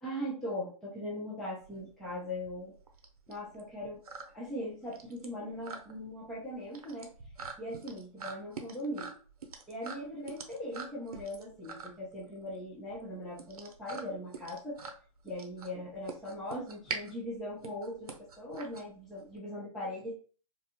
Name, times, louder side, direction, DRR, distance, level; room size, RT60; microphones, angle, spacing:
voice 1, 0.0-2.7 3.3-4.0 4.3-7.1 7.6-9.1 9.7-14.8 15.2-20.1, left 1 dB, ahead, -6 dB, 0.3 m, -40 dB
sound 1, 1.6-19.4, right 4 dB, 80° right, 0.7 m, -45 dB
2.6 x 2.1 x 2.8 m, 0.40 s
hypercardioid pair, 150°, 19 cm